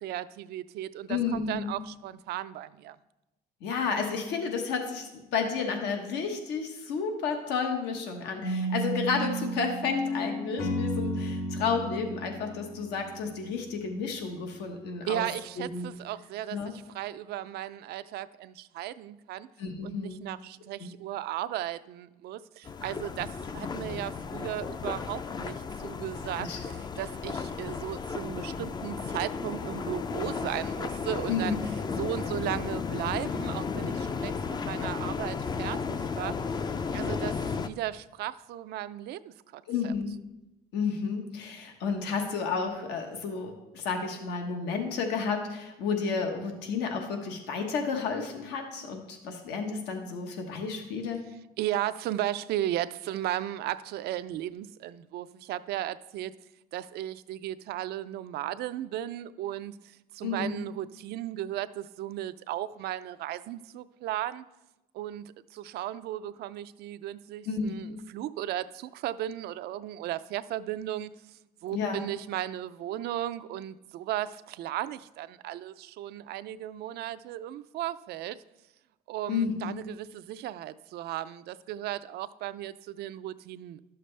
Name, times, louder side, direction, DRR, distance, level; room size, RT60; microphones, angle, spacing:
voice 1, 0.0-3.0 15.1-19.5 19.8-31.6 32.0-34.3 34.6-36.4 36.9-39.9 51.6-56.3 56.7-64.4 64.9-71.2 71.6-78.4 79.1-83.8, right 13 dB, 75° right, 14 dB, 0.4 m, -36 dB
voice 2, 1.1-1.7 3.6-15.3 15.6-15.9 16.5-16.7 19.6-20.2 20.8-20.9 26.3-26.6 31.3-31.5 39.7-40.1 40.7-51.2 60.2-60.5 67.5-68.0 71.7-72.0 79.3-79.7, left 5 dB, 90° left, 4 dB, 1.1 m, -31 dB
sound 1, 8.4-13.5, equal, 65° left, 1.5 m, -33 dB
sound 2, 22.6-37.7, left 5 dB, 25° left, 0.4 m, -34 dB
11.5 x 6.7 x 3.2 m, 0.96 s
cardioid pair, 110°, 17 cm